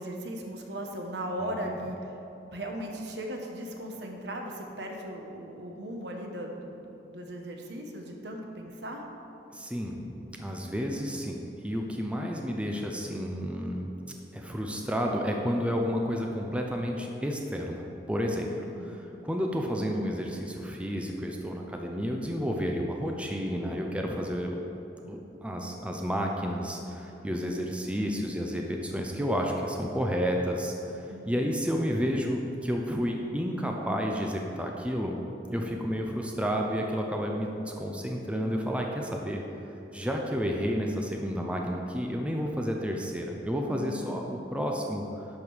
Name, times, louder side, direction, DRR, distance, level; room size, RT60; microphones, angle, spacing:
voice 1, 0.0-2.1 2.5-9.0 18.6-19.0 31.1-31.4 43.7-44.4, equal, 75° right, 2 dB, 1.3 m, -38 dB
voice 2, 9.5-13.9 14.3-18.5 18.9-24.6 25.1-35.2 35.5-39.4 39.9-45.0, equal, 5° right, 1 dB, 0.7 m, -31 dB
11.0 x 5.3 x 6.4 m, 3.0 s
head